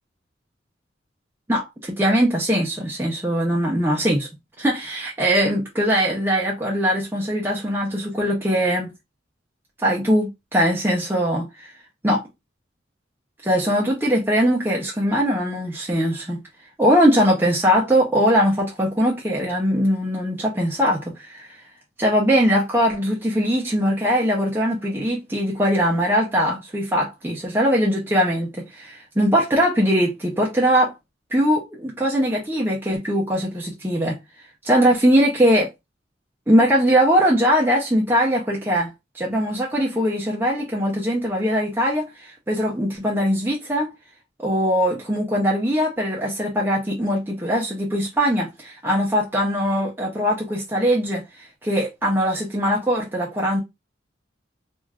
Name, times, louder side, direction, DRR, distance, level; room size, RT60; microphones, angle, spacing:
voice 1, 1.5-4.3 4.6-8.9 9.8-11.7 12.0-12.3 13.4-16.4 16.8-21.6 22.0-30.9 31.3-34.2 34.6-35.7 36.5-43.9 44.4-51.2 51.6-53.6, equal, 10° right, 0.6 m, -21 dB
3.3 x 2.5 x 2.3 m
head